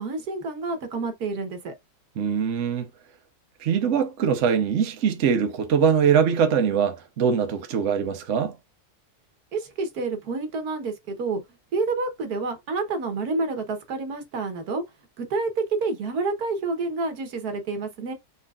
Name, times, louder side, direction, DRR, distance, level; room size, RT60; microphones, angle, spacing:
voice 1, 0.0-1.7 9.5-11.4 11.7-14.8 15.2-18.1, right 3 dB, 70° right, 1.6 m, -28 dB
voice 2, 2.2-2.9 3.6-8.5, right 7 dB, 55° right, 1.0 m, -22 dB
4.5 x 4.1 x 2.4 m
omnidirectional pair, 1.7 m